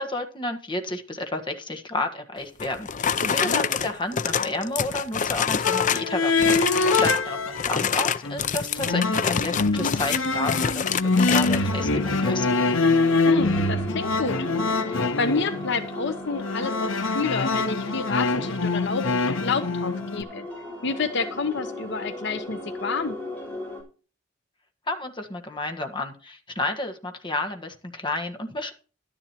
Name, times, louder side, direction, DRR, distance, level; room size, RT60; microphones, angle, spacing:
voice 1, 0.0-12.5 24.9-28.7, left 2 dB, 25° left, 5 dB, 1.6 m, -31 dB
sound 1, 2.6-6.1 6.4-7.2 7.6-11.6, left 7 dB, 40° left, 0.5 m, -26 dB
voice 2, 3.2-3.6 13.3-14.5 14.8-19.1 19.4-20.5 20.8-23.2, left 4 dB, 65° left, 9 dB, 1.0 m, -29 dB
sound 2, 5.6-7.9 8.2-20.2, left 3 dB, 85° left, 1.1 m, -24 dB
sound 3, 11.4-23.8, left 1 dB, 10° left, 4.5 m, -37 dB
12.0 x 10.5 x 3.0 m, 0.36 s
head